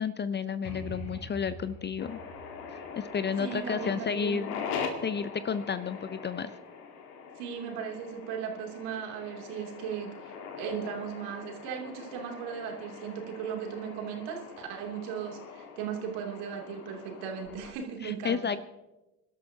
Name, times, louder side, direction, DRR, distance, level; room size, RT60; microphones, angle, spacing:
voice 1, 0.0-2.2 2.7-4.7 5.0-6.5 18.0-18.6, left 6 dB, 25° left, 15 dB, 0.6 m, -32 dB
sound 1, 0.6-4.3, right 1 dB, 55° left, 3.5 m, -45 dB
sound 2, 2.0-17.7, left 6 dB, 75° left, 2.0 m, -42 dB
voice 2, 3.4-4.4 7.4-18.4, right 7 dB, 65° right, 1 dB, 3.0 m, -37 dB
26.5 x 12.5 x 2.9 m, 1.0 s
hypercardioid pair, 65°, 45 cm